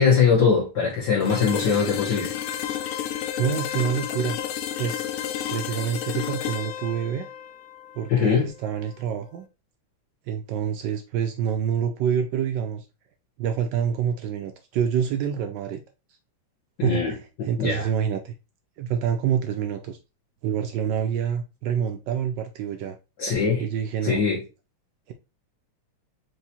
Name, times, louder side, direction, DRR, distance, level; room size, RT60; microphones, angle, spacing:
voice 1, 0.0-2.3 8.1-8.5 16.8-17.9 23.2-23.6 24.0-24.4, left 6 dB, 55° left, 1.9 m, -22 dB
sound 1, 1.2-9.0, left 10 dB, 85° left, 1.6 m, -32 dB
voice 2, 3.4-4.4 4.8-5.1 5.5-7.3 8.0-9.5 10.3-12.8 13.4-15.8 16.8-18.3 18.8-20.0 20.4-23.0 23.6-24.2 25.1-25.2, right 8 dB, 80° right, 1.0 m, -27 dB
4.7 x 3.0 x 2.8 m
omnidirectional pair, 2.4 m